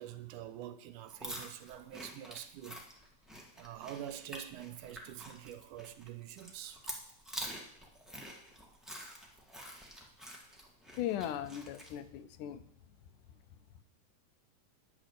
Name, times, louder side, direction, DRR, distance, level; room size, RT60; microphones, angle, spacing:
voice 1, 0.0-2.8 3.6-6.8, right 11 dB, 80° right, 2.1 m, -46 dB
sound 1, 1.1-12.0, equal, ahead, 0.5 m, -47 dB
voice 2, 11.0-12.6, left 11 dB, 80° left, 2.1 m, -38 dB
9.9 x 6.2 x 8.1 m
omnidirectional pair, 3.7 m